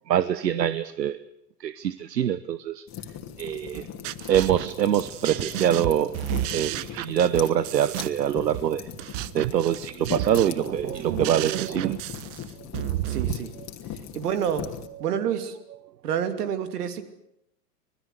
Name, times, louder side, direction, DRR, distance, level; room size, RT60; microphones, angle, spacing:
voice 1, 0.1-1.2 1.6-2.8 3.4-3.9 4.3-8.9 9.3-12.0, right 10 dB, 90° right, 16 dB, 1.0 m, -24 dB
sound 1, 2.9-14.9, left 9 dB, 35° left, 2.7 m, -39 dB
sound 2, 3.8-13.3, right 15 dB, 50° right, 1.0 m, -32 dB
voice 2, 13.1-13.5 14.1-14.7 15.0-15.6 16.0-17.0, right 8 dB, 70° right, 9 dB, 3.0 m, -28 dB
26.5 x 19.5 x 8.2 m, 0.80 s
hypercardioid pair, 105°, 48 cm